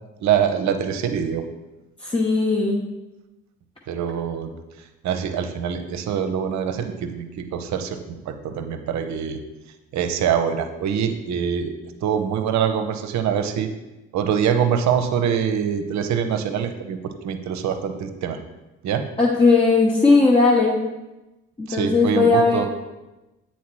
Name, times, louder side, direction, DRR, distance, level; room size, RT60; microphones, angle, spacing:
voice 1, 0.2-1.4 3.9-4.5 5.0-9.4 9.9-11.7 12.0-13.7 14.1-18.4 18.8-19.0 21.7-22.7, right 8 dB, 55° right, 8 dB, 0.7 m, -24 dB
voice 2, 2.0-2.8 19.2-20.8 21.6-22.6, left 3 dB, 15° left, -3 dB, 0.9 m, -17 dB
8.2 x 4.3 x 3.0 m, 1.0 s
hypercardioid pair, 50°, 35 cm